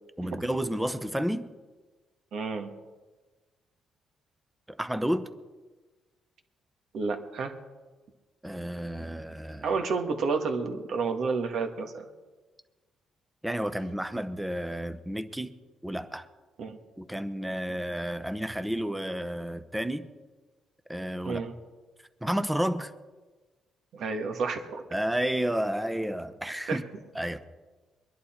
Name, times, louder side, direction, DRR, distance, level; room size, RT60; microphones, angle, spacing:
voice 1, 0.2-1.5 4.7-5.3 8.4-9.7 13.4-15.5 15.8-16.3 17.0-20.1 20.9-21.4 22.2-22.9 24.9-26.8 27.1-27.4, equal, 5° right, 11 dB, 0.9 m, -31 dB
voice 2, 2.3-2.7 6.9-7.5 9.6-12.0 16.6-16.8 21.2-21.5 23.9-24.8 26.7-26.8, right 4 dB, 65° right, 5 dB, 1.7 m, -30 dB
22.5 x 11.0 x 4.4 m, 1.3 s
cardioid pair, 90°, 0 cm